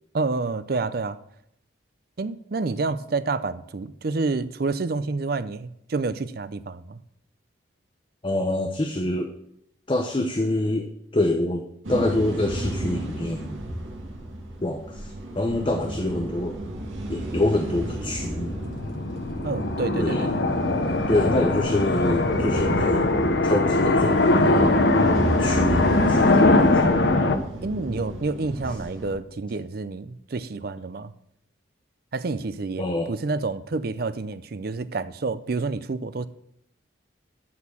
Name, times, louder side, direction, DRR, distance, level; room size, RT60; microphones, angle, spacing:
voice 1, 0.1-1.2 2.2-7.0 19.4-20.4 27.1-31.1 32.1-36.3, right 3 dB, 50° right, 15 dB, 0.5 m, -29 dB
voice 2, 8.2-9.3 9.9-13.6 14.6-16.6 17.1-18.5 20.0-20.3 21.1-23.0 23.4-24.8 25.4-26.7 32.8-33.1, left 1 dB, 25° left, 4 dB, 0.7 m, -26 dB
sound 1, 11.8-29.1, right 1 dB, 90° right, 2.1 m, -32 dB
sound 2, 18.4-27.4, left 2 dB, 60° left, 0.8 m, -21 dB
12.5 x 4.4 x 7.1 m, 0.76 s
head